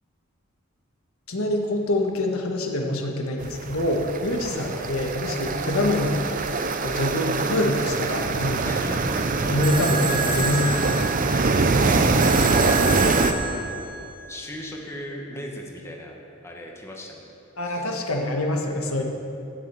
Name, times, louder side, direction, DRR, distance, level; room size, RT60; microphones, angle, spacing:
voice 1, 1.3-6.4 6.8-8.8 9.5-11.0 17.6-19.0, left 1 dB, 85° left, 2 dB, 1.5 m, -25 dB
sound 1, 3.4-13.3, right 3 dB, 40° right, 0.7 m, -24 dB
voice 2, 4.5-4.9 8.6-9.5 11.7-12.6 12.8-13.7 14.3-16.1 16.4-17.3 17.6-18.1, left 1 dB, 15° left, -1 dB, 1.5 m, -38 dB
sound 2, 9.6-14.6, right 3 dB, 20° right, 1.2 m, -30 dB
13.0 x 6.5 x 8.9 m, 2.7 s
head